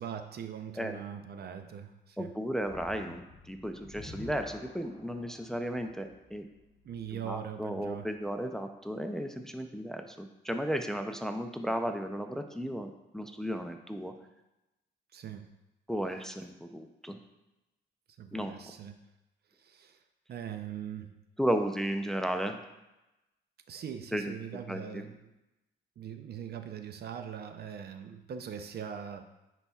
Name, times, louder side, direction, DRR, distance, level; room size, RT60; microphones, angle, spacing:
voice 1, 0.0-2.3 6.8-8.1 15.1-15.5 18.2-19.0 19.6-20.0 20.3-21.1 23.7-25.2 26.0-29.2, right 8 dB, 55° right, 8 dB, 0.5 m, -41 dB
voice 2, 2.2-6.5 7.2-14.1 15.9-17.2 18.3-18.5 21.4-22.6 24.1-24.3 24.7-25.0, equal, ahead, 5 dB, 0.5 m, -34 dB
sound 1, 2.6-7.9, left 2 dB, 30° left, 2.2 m, -51 dB
9.8 x 4.1 x 2.4 m, 0.96 s
cardioid pair, 90°, 20 cm